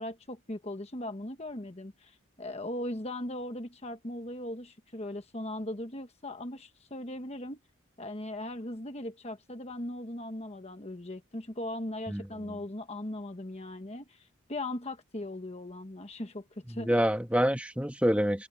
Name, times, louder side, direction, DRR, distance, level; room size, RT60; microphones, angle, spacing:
voice 1, 0.0-7.6 8.0-17.0, left 1 dB, 30° left, 1.2 m, -39 dB
voice 2, 16.7-18.5, equal, 5° right, 1.6 m, -27 dB
head